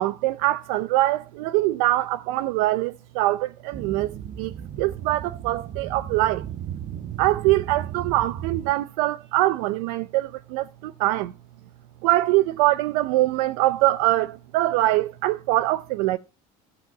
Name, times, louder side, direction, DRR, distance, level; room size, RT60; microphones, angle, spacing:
voice 1, 0.0-6.4 7.2-11.3 12.0-16.2, right 17 dB, 85° right, 0.5 m, -23 dB
sound 1, 3.7-8.7, right 10 dB, 40° right, 0.8 m, -35 dB
13.5 x 5.0 x 7.1 m
cardioid pair, 120°, 19 cm